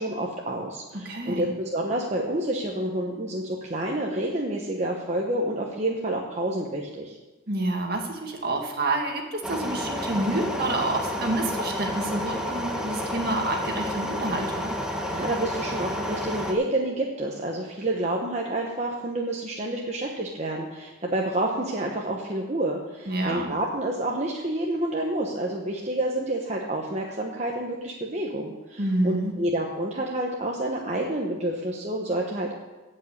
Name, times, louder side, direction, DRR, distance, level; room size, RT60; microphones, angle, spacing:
voice 1, 0.0-7.2 15.1-32.5, right 1 dB, 35° right, -1 dB, 1.2 m, -29 dB
voice 2, 1.1-1.5 7.5-14.8 23.1-23.5 28.8-29.3, right 2 dB, 55° right, 2 dB, 2.0 m, -28 dB
sound 1, 9.4-16.5, equal, 5° right, 1.3 m, -30 dB
15.0 x 5.5 x 8.6 m, 1.2 s
head